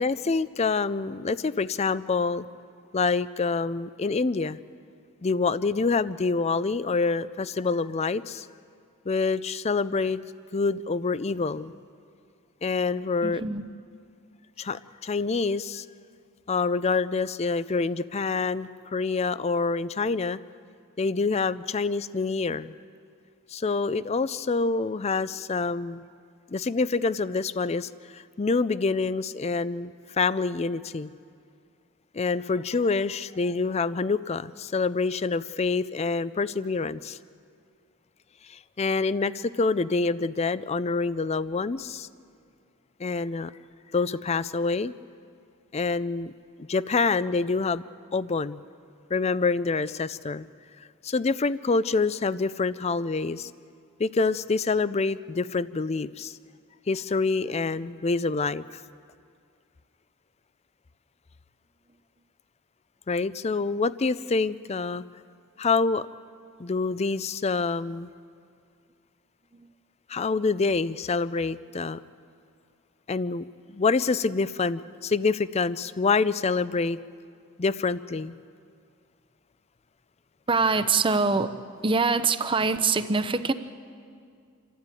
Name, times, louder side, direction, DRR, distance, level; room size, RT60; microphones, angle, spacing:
voice 1, 0.0-2.5 2.9-4.6 5.2-8.5 9.1-10.2 10.5-11.7 12.6-13.4 14.6-15.9 16.5-20.4 21.0-22.8 23.5-26.0 26.5-31.1 32.1-37.2 38.4-42.1 43.0-43.5 43.9-44.9 45.7-46.3 46.7-47.8 48.1-48.6 49.1-50.5 51.0-53.5 54.0-56.4 56.9-58.8 63.1-65.0 65.6-66.1 66.6-68.1 70.1-72.0 73.1-77.0 77.6-78.3, left 4 dB, 30° left, 17 dB, 0.4 m, -26 dB
voice 2, 13.2-13.6 69.5-69.7 80.5-81.5 81.8-83.5, right 4 dB, 25° right, 11 dB, 0.7 m, -24 dB
27.5 x 12.5 x 9.2 m, 2.3 s
head